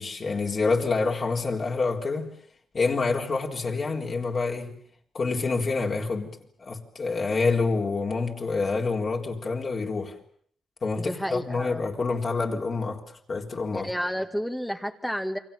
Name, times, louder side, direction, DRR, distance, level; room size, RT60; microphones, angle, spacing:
voice 1, 0.0-2.3 2.7-4.8 5.1-10.1 10.8-13.0 13.3-13.9, left 4 dB, 45° left, 4.0 m, -27 dB
voice 2, 11.0-11.8 13.7-15.4, equal, 5° left, 1.8 m, -31 dB
29.0 x 24.0 x 7.1 m
cardioid pair, 100°, 0 cm